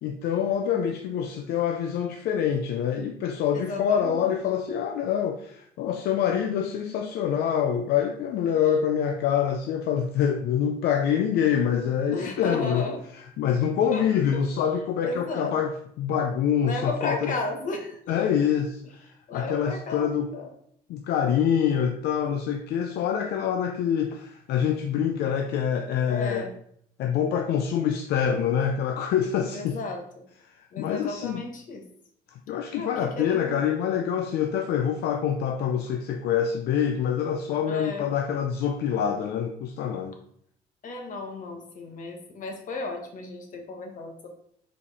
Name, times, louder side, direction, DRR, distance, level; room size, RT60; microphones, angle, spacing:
voice 1, 0.0-17.4 18.1-19.1 19.3-20.3 20.9-26.5 27.0-29.8 30.8-31.4 32.3-40.2, left 8 dB, 75° left, 5 dB, 0.6 m, -26 dB
voice 2, 3.5-4.3 12.1-13.0 13.9-14.0 15.0-15.6 16.6-18.0 19.3-20.5 26.1-26.5 29.5-30.2 30.7-31.8 32.7-33.6 37.7-38.1 40.8-44.3, left 3 dB, 50° left, 3 dB, 1.5 m, -34 dB
5.2 x 4.7 x 4.2 m, 0.67 s
cardioid pair, 110°, 17 cm